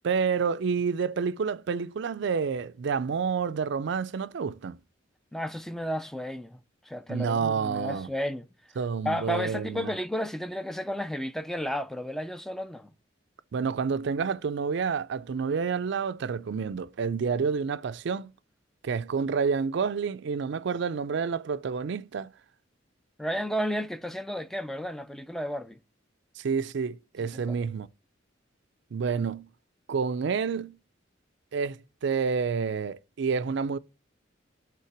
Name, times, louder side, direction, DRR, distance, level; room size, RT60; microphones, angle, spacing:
voice 1, 0.0-4.8 7.1-8.1 8.8-9.9 13.5-18.3 18.8-22.3 26.4-27.9 28.9-29.5 29.9-30.8 31.5-33.8, right 5 dB, 65° right, 0.4 m, -29 dB
voice 2, 5.3-6.6 6.9-8.5 9.0-12.9 23.2-25.8 27.2-27.6, equal, ahead, 0.4 m, -32 dB
5.7 x 3.6 x 6.0 m
head